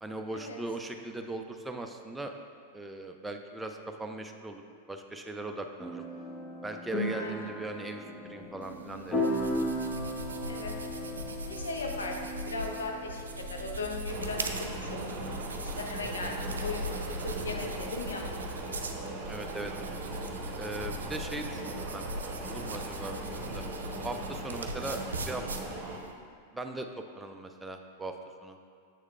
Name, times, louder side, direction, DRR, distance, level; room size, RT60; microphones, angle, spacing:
voice 1, 0.0-2.3 2.7-4.6 4.9-6.0 6.6-8.0 8.3-9.3 19.3-19.7 20.6-22.0 22.5-23.6 24.0-25.4 26.5-28.1 28.4-28.6, right 2 dB, 10° right, 4 dB, 0.4 m, -39 dB
sound 1, 5.8-15.5, equal, 20° left, 0.9 m, -37 dB
voice 2, 7.2-7.5 10.4-10.7 11.5-15.1 15.5-18.5 23.1-23.2, left 3 dB, 75° left, 1 dB, 0.8 m, -38 dB
sound 2, 8.6-26.1, right 1 dB, 75° right, 0.4 m, -40 dB
sound 3, 14.1-26.0, right 2 dB, 45° right, 0.8 m, -40 dB
7.3 x 6.3 x 2.4 m, 2.2 s
figure-of-eight pair, 95°, 0 cm